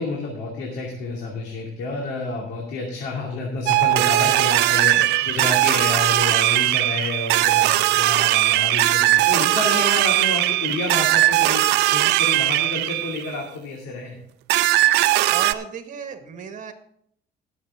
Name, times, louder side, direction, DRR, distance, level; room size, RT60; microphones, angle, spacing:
voice 1, 0.0-14.2, left 3 dB, 90° left, -2 dB, 2.6 m, -29 dB
sound 1, 3.7-13.4 14.5-15.5, right 16 dB, 85° right, 0.5 m, -19 dB
voice 2, 4.9-5.7 15.3-16.7, right 7 dB, 50° right, 7 dB, 1.8 m, -35 dB
18.5 x 7.2 x 3.6 m, 0.68 s
cardioid pair, 110°, 17 cm